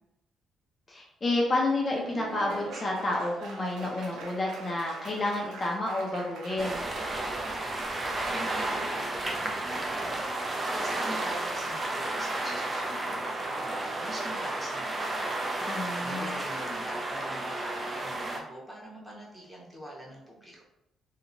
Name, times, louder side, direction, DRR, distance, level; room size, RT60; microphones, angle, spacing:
voice 1, 0.9-6.8 15.6-16.4, left 2 dB, 30° left, -2 dB, 0.5 m, -30 dB
Laughter / Applause, 1.6-9.5, right 3 dB, 85° right, 0.4 m, -44 dB
sound 1, 6.6-18.4, right 2 dB, 25° right, 0.5 m, -32 dB
voice 2, 8.0-10.2 10.6-15.4 15.7-20.6, equal, 10° right, -4 dB, 1.0 m, -43 dB
2.8 x 2.1 x 2.5 m, 0.81 s
cardioid pair, 90°, 0 cm